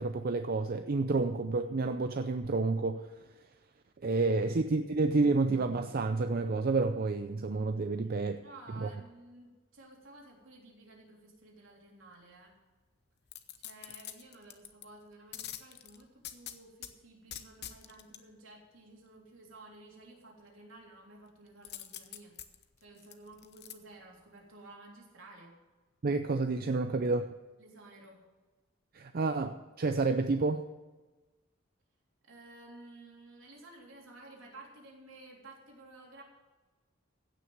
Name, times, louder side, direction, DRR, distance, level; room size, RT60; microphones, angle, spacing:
voice 1, 0.0-3.1 4.0-8.4 8.8-8.9 26.0-27.4 28.9-30.6, right 3 dB, 50° right, 0.5 m, -29 dB
voice 2, 7.9-12.5 13.6-22.3 22.8-25.5 27.6-28.2 32.2-36.2, right 2 dB, 75° right, 3.5 m, -54 dB
sound 1, 13.3-14.9 15.3-16.9 17.3-18.2 21.6-23.7 24.2-24.3, left 11 dB, 55° left, 0.9 m, -45 dB
16.0 x 6.2 x 7.7 m
head